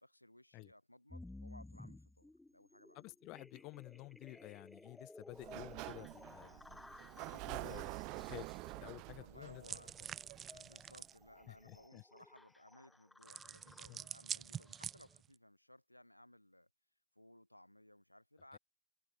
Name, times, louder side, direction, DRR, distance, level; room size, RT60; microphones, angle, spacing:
voice 1, 0.0-3.1 9.1-9.9 10.5-16.7 17.1-18.6, left 1 dB, 85° left, 1.0 m, -61 dB
sound 1, 1.1-15.2, left 2 dB, 5° left, 1.2 m, -57 dB
voice 2, 2.9-6.8 7.3-8.5 8.8-9.6 11.5-12.0 13.9-14.0 18.5-18.6, left 23 dB, 40° left, 0.7 m, -52 dB
Sliding door, 5.3-11.0, right 28 dB, 45° right, 0.9 m, -47 dB
sound 2, 9.6-11.2 13.2-15.3, right 8 dB, 25° right, 0.4 m, -46 dB
figure-of-eight pair, 90°, 0 cm